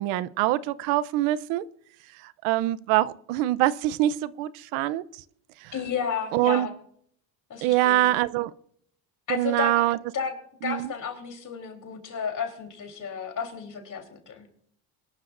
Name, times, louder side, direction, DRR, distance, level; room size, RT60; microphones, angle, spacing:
voice 1, 0.0-1.6 2.2-5.0 5.6-5.7 6.3-6.7 7.6-8.5 9.3-10.0 10.6-10.9, right 15 dB, 90° right, 19 dB, 0.8 m, -24 dB
voice 2, 5.7-6.7 7.5-8.0 9.3-9.8 10.1-10.3 10.6-14.5, left 7 dB, 40° left, 4 dB, 3.6 m, -32 dB
23.5 x 12.0 x 2.6 m, 0.67 s
cardioid pair, 105°, 47 cm